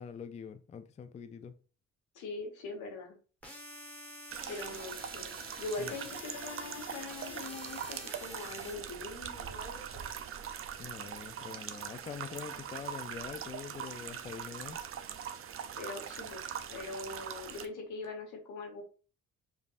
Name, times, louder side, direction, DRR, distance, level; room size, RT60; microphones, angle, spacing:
voice 1, 0.0-1.5 5.8-5.9 10.8-14.8, left 7 dB, 25° left, 0.3 m, -44 dB
voice 2, 2.1-3.1 4.5-10.4 15.7-16.4 16.7-18.8, left 3 dB, 80° left, 1.3 m, -42 dB
sound 1, 3.4-8.7, equal, 5° left, 1.4 m, -48 dB
sound 2, 4.3-17.7, right 8 dB, 45° right, 0.5 m, -42 dB
5.2 x 2.6 x 2.5 m
cardioid pair, 90°, 30 cm